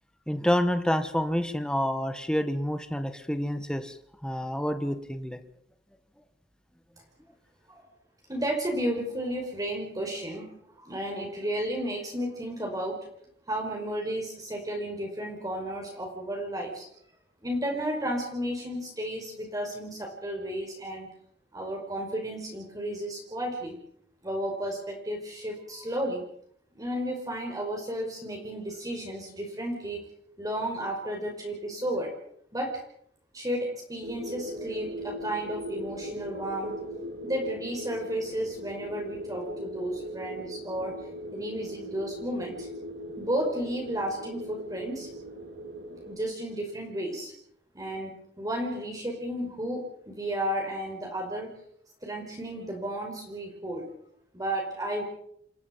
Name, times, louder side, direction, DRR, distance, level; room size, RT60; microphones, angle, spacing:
voice 1, 0.3-3.9 4.2-5.4, equal, 5° left, 9 dB, 1.8 m, -28 dB
voice 2, 8.3-10.5 10.8-13.1 13.5-16.9 17.4-21.1 21.5-23.8 24.2-26.2 26.7-30.1 30.4-32.1 32.5-32.8 33.3-36.8 37.2-41.1 41.3-42.7 43.2-45.1 46.1-47.3 47.7-51.5 52.0-53.9 54.3-55.0, right 1 dB, 20° right, 1 dB, 5.1 m, -33 dB
sound 1, 34.0-46.1, equal, 70° right, 4.4 m, -39 dB
28.5 x 14.0 x 7.7 m, 0.70 s
head